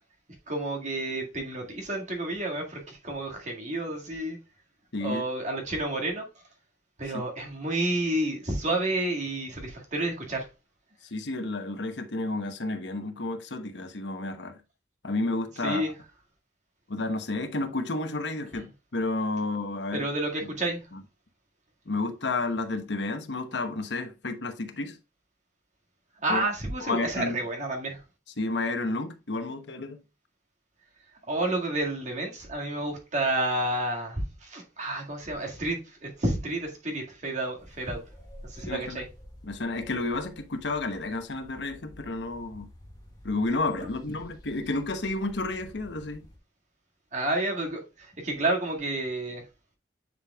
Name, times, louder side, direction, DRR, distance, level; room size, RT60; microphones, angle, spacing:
voice 1, 0.5-4.4 5.0-6.3 7.0-10.5 15.6-15.9 18.5-18.6 19.9-20.8 26.2-28.0 31.3-38.0 38.4-39.1 47.1-49.4, right 2 dB, 40° right, 1.9 m, -30 dB
voice 2, 4.9-5.2 7.1-7.2 11.1-14.6 15.0-15.8 16.9-20.1 20.9-21.0 21.9-25.0 26.3-26.4 26.8-27.4 28.4-30.0 38.7-39.0 39.4-42.7 43.2-46.3, left 2 dB, 75° left, 1.0 m, -31 dB
sound 1, 37.6-46.4, equal, 20° left, 1.8 m, -50 dB
9.6 x 5.0 x 2.3 m
head